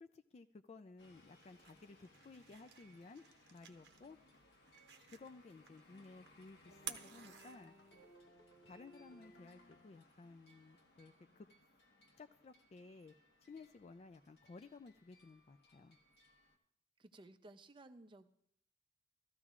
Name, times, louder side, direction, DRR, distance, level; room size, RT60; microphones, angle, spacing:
voice 1, 0.0-3.2 3.5-4.2 5.1-7.7 8.6-11.5 12.2-13.1 13.5-16.0, left 3 dB, 40° left, 9 dB, 0.3 m, -56 dB
sound 1, 1.0-16.6, left 1 dB, 65° left, 1.3 m, -68 dB
sound 2, 1.2-8.1, right 9 dB, 70° right, 0.8 m, -55 dB
sound 3, 6.6-10.1, equal, 85° left, 1.1 m, -62 dB
voice 2, 17.0-18.3, right 2 dB, 30° right, 9 dB, 0.5 m, -57 dB
16.0 x 13.5 x 2.4 m, 0.70 s
head